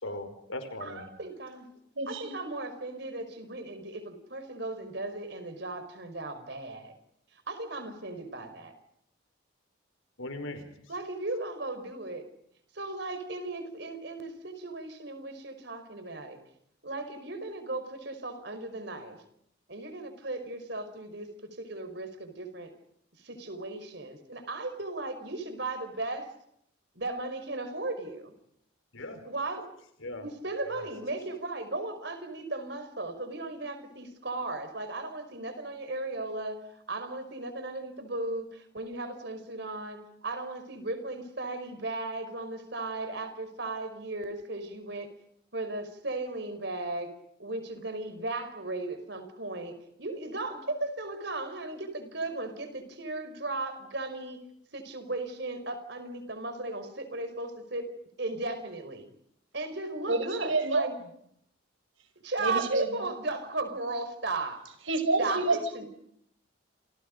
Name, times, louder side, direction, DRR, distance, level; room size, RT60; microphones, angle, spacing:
voice 1, 0.0-1.1 10.2-10.7 28.9-29.2 30.0-30.2 30.8-30.9, left 1 dB, 85° left, 8 dB, 4.9 m, -38 dB
voice 2, 0.8-1.7 2.1-7.0 7.3-8.7 10.9-12.2 12.7-16.4 16.8-19.2 19.7-22.7 23.2-26.3 26.9-28.2 29.2-29.7 30.1-45.1 45.5-47.1 47.4-54.4 54.7-57.9 58.2-59.1 59.5-60.9 62.2-64.7 65.2-65.9, right 2 dB, 60° right, 9 dB, 4.9 m, -36 dB
voice 3, 2.0-2.4 60.1-60.9 62.4-62.9 64.9-65.6, right 3 dB, 85° right, 9 dB, 5.3 m, -28 dB
29.0 x 28.5 x 5.3 m, 0.72 s
head